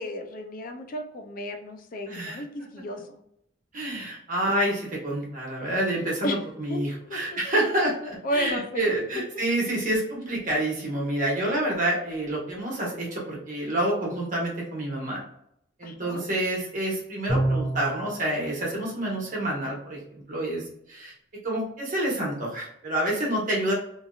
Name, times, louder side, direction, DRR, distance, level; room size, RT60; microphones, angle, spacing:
voice 1, 0.0-2.5 2.7-3.2 6.2-6.4 6.7-6.8 7.1-7.2 8.2-8.9 15.8-16.3, equal, 45° left, 5 dB, 0.4 m, -33 dB
voice 2, 2.1-2.4 3.7-15.2 15.8-21.1 21.4-23.7, right 1 dB, 45° right, -3 dB, 1.2 m, -28 dB
Bowed string instrument, 17.3-18.2, right 1 dB, 5° left, 0.8 m, -26 dB
2.8 x 2.6 x 2.3 m, 0.74 s
head